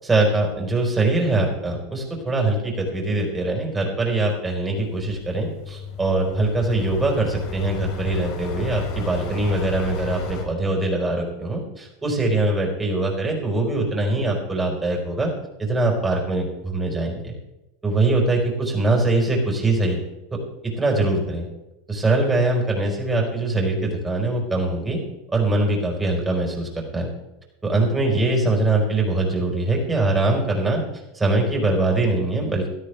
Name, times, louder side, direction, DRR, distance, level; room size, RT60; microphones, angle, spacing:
voice 1, 0.0-15.3 15.6-17.3 17.8-20.0 20.3-20.4 20.6-21.5 21.9-25.0 25.3-27.1 27.6-30.8 31.1-32.7, right 2 dB, 15° right, 0 dB, 4.8 m, -22 dB
sound 1, 4.8-10.5, left 4 dB, 60° left, 4.0 m, -32 dB
17.5 x 12.5 x 3.5 m, 0.96 s
supercardioid pair, 125°, 0 cm